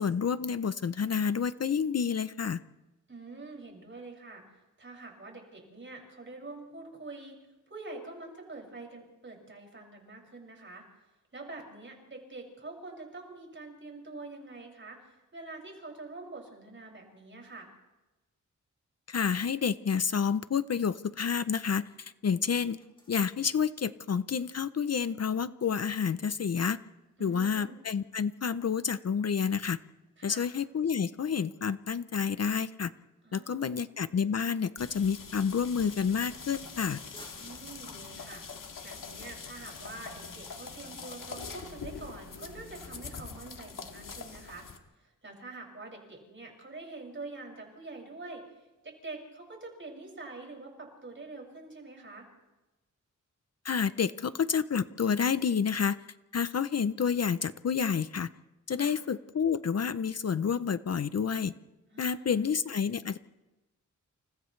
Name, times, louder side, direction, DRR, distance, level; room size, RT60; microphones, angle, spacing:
voice 1, 0.0-2.6 19.1-22.8 23.1-26.8 27.2-29.8 30.2-32.9 33.3-37.0 53.6-56.0 56.3-58.3 58.7-61.5 62.0-63.2, left 6 dB, 50° left, 13 dB, 0.6 m, -29 dB
voice 2, 3.1-4.4 4.8-7.4 7.7-10.8 11.3-17.7 27.2-27.8 30.2-30.5 33.2-33.9 37.4-38.4 38.8-44.7 45.0-52.3 58.8-58.9 61.9-62.5, right 3 dB, 40° right, 0 dB, 6.4 m, -46 dB
sound 1, 20.7-40.2, left 1 dB, 15° left, 7.4 m, -64 dB
sound 2, 34.8-44.8, left 5 dB, 90° left, 2.0 m, -44 dB
30.0 x 29.0 x 3.3 m, 1.1 s
wide cardioid pair, 120°, 32 cm